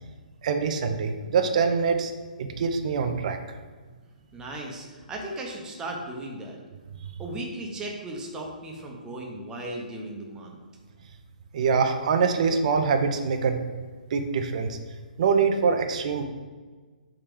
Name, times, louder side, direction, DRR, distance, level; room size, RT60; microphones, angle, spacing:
voice 1, 0.4-2.1 2.4-3.4 11.5-13.6 14.1-14.8 15.2-16.2, right 5 dB, 50° right, 7 dB, 0.4 m, -24 dB
voice 2, 4.3-6.6 7.2-10.6, right 1 dB, 15° right, 0 dB, 0.7 m, -36 dB
3.5 x 2.8 x 4.7 m, 1.4 s
hypercardioid pair, 140°, 5 cm